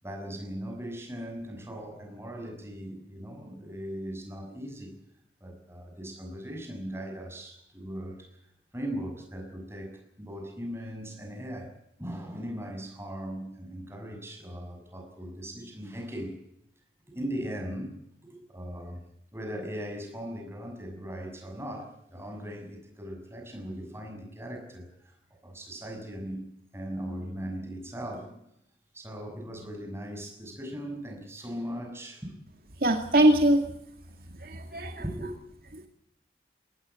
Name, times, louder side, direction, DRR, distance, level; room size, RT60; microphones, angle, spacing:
voice 1, 0.0-4.9 5.4-16.4 17.1-19.0 19.3-28.4 28.9-32.3 34.7-35.3, equal, 15° right, 3 dB, 6.5 m, -39 dB
voice 2, 32.8-33.6 34.4-35.0 35.7-35.9, right 1 dB, 55° right, 4 dB, 2.2 m, -22 dB
23.0 x 18.5 x 8.2 m, 0.76 s
head